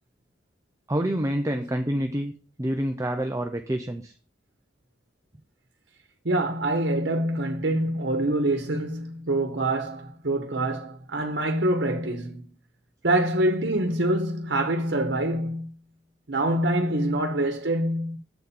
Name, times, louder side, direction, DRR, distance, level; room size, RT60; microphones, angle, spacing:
voice 1, 0.9-2.3 2.6-4.1, right 1 dB, 20° right, 0.6 m, -27 dB
voice 2, 6.2-12.5 13.0-15.7 16.3-18.2, right 1 dB, 85° right, 1.0 m, -25 dB
7.9 x 4.3 x 7.1 m
head